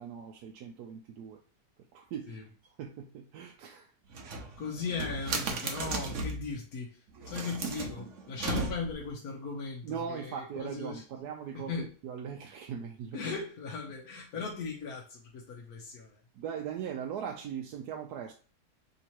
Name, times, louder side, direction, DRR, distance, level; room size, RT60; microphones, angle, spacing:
voice 1, 0.0-1.4 1.9-2.4 2.8-3.9 9.8-13.2 16.3-18.3, right 7 dB, 80° right, 1.1 m, -39 dB
sound 1, 4.1-6.5 7.2-9.1, right 3 dB, 55° right, 1.0 m, -36 dB
voice 2, 4.6-11.0 11.5-11.9 13.1-16.2, left 4 dB, 70° left, 1.3 m, -38 dB
3.6 x 2.8 x 4.4 m
omnidirectional pair, 1.7 m